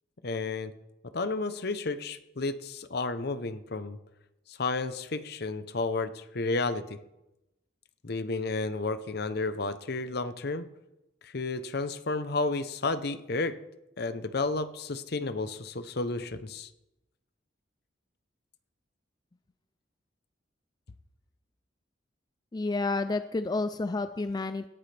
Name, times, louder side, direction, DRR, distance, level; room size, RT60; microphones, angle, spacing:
voice 1, 0.2-0.7 1.1-4.0 4.5-7.0 8.0-10.7 11.2-13.6 14.0-16.7, left 3 dB, 60° left, 12 dB, 0.8 m, -32 dB
voice 2, 22.5-24.7, left 3 dB, 20° left, 10 dB, 0.4 m, -30 dB
17.5 x 10.0 x 3.4 m, 0.92 s
head